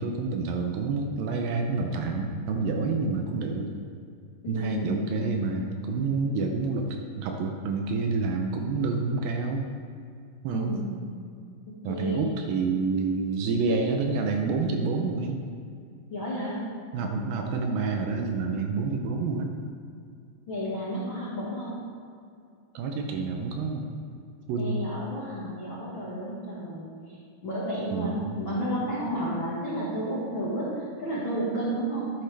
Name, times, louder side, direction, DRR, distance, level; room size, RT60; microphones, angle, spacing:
voice 1, 0.0-3.7 4.5-9.7 10.4-10.8 11.8-15.5 16.9-19.5 22.7-23.9 24.5-24.8 27.9-28.4, right 4 dB, 75° right, 3 dB, 2.3 m, -28 dB
voice 2, 4.4-5.2 10.5-10.9 11.9-12.4 16.1-16.6 20.5-21.7 24.6-26.8 27.4-32.1, equal, 55° left, -8 dB, 1.4 m, -31 dB
11.5 x 9.7 x 3.4 m, 2.4 s
omnidirectional pair, 4.5 m